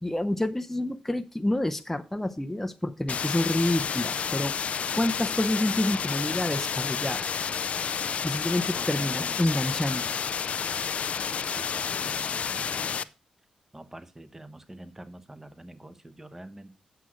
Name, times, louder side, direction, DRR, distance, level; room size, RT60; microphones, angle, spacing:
voice 1, 0.0-4.7 4.9-7.2 8.2-10.1, left 1 dB, 10° left, 7 dB, 0.7 m, -28 dB
sound 1, 3.1-13.0, left 7 dB, 60° left, 0.5 m, -30 dB
voice 2, 8.7-9.5 11.5-13.1 13.7-16.7, right 1 dB, 15° right, 12 dB, 1.1 m, -46 dB
8.2 x 5.9 x 6.1 m, 0.33 s
cardioid pair, 65°, 2 cm